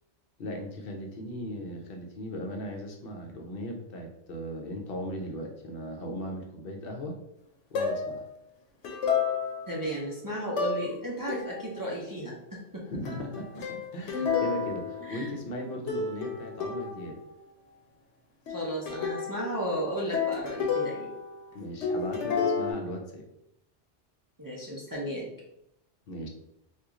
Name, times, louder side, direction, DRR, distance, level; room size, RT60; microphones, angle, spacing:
voice 1, 0.4-7.2 7.7-8.2 12.8-17.2 21.5-23.2 26.1-26.3, equal, 60° left, 2 dB, 0.8 m, -38 dB
sound 1, 7.7-8.2 8.8-9.8 10.6-10.9 11.3-11.8 13.0-15.6 15.9-17.3 18.5-21.5 21.8-22.7, left 5 dB, 85° left, 1.0 m, -31 dB
voice 2, 9.7-12.8 15.0-15.3 18.5-21.1 24.4-25.3, right 1 dB, 30° right, -4 dB, 0.4 m, -34 dB
2.9 x 2.4 x 3.6 m, 0.81 s
omnidirectional pair, 1.2 m